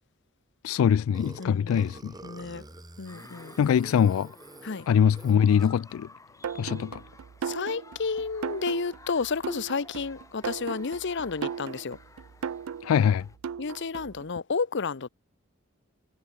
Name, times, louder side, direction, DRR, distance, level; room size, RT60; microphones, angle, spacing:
voice 1, 0.6-2.1 3.6-4.3 4.9-6.1 6.6-7.0 12.8-13.3, left 8 dB, 90° left, 0.3 m, -23 dB
Burping eructation, 1.1-5.9, right 1 dB, 20° right, 3.5 m, -47 dB
voice 2, 1.4-1.9 2.2-2.6 3.0-3.5 4.6-4.9 7.4-12.0 13.6-15.1, left 4 dB, 60° left, 0.8 m, -31 dB
sound 1, 3.1-13.4, left 3 dB, 15° left, 1.6 m, -53 dB
sound 2, 6.4-14.2, right 7 dB, 85° right, 0.4 m, -37 dB
head